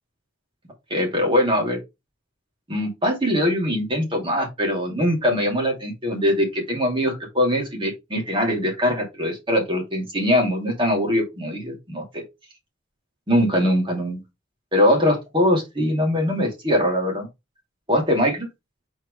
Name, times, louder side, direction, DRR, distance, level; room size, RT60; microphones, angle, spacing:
voice 1, 0.9-1.8 2.7-12.2 13.3-14.2 14.7-17.3 17.9-18.5, equal, 25° right, 2.7 m, -22 dB
4.6 x 4.4 x 4.9 m
head